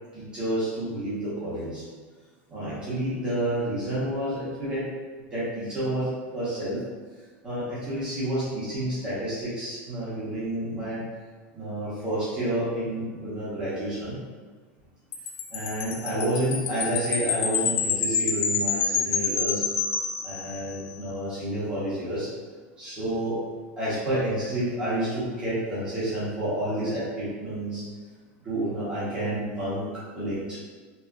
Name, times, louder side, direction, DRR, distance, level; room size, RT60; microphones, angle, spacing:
voice 1, 0.1-1.8 2.5-4.9 5.3-6.8 7.4-11.0 11.5-14.2 15.5-19.6 20.2-22.3 22.8-23.4 23.8-27.8 28.4-30.6, right 1 dB, 15° right, -11 dB, 1.1 m, -29 dB
Wind chime, 15.1-20.8, left 5 dB, 45° left, 0.3 m, -28 dB
3.1 x 2.8 x 2.4 m, 1.5 s
supercardioid pair, 165°, 6 cm